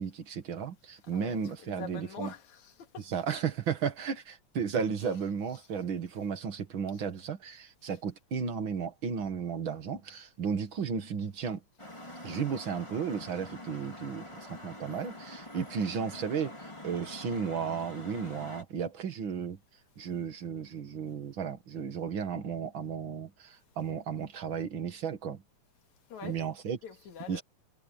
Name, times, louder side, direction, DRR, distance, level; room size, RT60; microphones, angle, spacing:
voice 1, 0.0-2.3 3.0-11.6 12.2-16.5 16.8-19.6 20.0-25.4 26.2-26.8 27.3-27.4, right 6 dB, 45° right, 2.3 m, -34 dB
voice 2, 1.1-3.1 5.0-5.2 5.5-5.6 26.1-26.4 26.8-27.4, left 7 dB, 75° left, 3.5 m, -45 dB
sound 1, 11.8-18.6, left 1 dB, 10° left, 3.2 m, -45 dB
omnidirectional pair, 3.3 m